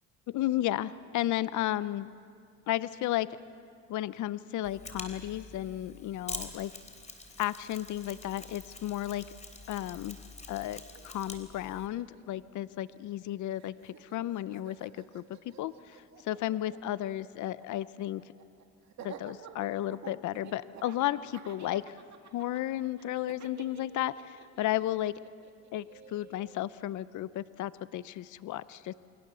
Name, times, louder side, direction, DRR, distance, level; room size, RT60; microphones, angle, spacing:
voice 1, 0.3-2.1 2.7-3.4 3.9-6.7 7.4-9.2 9.7-10.2 10.5-15.2 15.6-18.2 19.0-22.0 22.3-25.1 25.7-28.9, left 14 dB, 75° left, 16 dB, 0.6 m, -33 dB
Mechanisms, 4.6-11.9, left 3 dB, 25° left, 3.4 m, -46 dB
Laughter, 10.6-10.7 10.9-13.3 13.6-26.6, right 8 dB, 65° right, 2.3 m, -51 dB
29.0 x 22.5 x 6.9 m, 2.2 s
cardioid pair, 90°, 30 cm